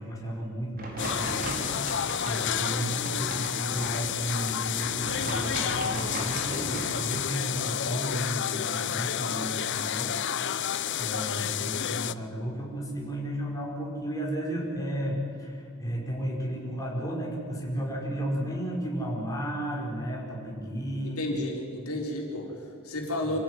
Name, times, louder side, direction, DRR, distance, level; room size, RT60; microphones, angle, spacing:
voice 1, 0.0-21.2 23.2-23.4, right 1 dB, 15° left, -3 dB, 5.1 m, -33 dB
sound 1, 0.8-7.3, right 1 dB, 45° right, 4.7 m, -37 dB
sound 2, 1.0-12.1, left 9 dB, 55° left, 0.7 m, -30 dB
voice 2, 21.0-23.4, left 1 dB, 85° left, 0 dB, 4.2 m, -32 dB
26.0 x 15.5 x 9.5 m, 2.4 s
head